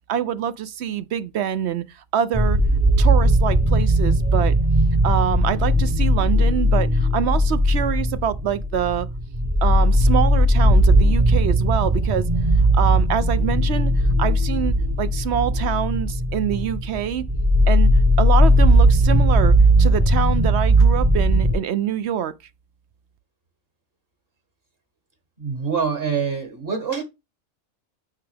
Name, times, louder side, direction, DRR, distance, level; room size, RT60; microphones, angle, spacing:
voice 1, 0.1-1.8 2.1-2.6 3.0-4.5 5.0-9.1 9.6-12.3 12.7-13.9 14.2-17.2 17.7-17.9 18.2-22.3, right 9 dB, 65° right, 0.9 m, -25 dB
sound 1, 2.3-21.5, right 1 dB, 20° right, 0.9 m, -18 dB
voice 2, 25.4-27.0, right 6 dB, 50° right, 1.8 m, -25 dB
9.4 x 3.4 x 3.3 m
omnidirectional pair, 1.3 m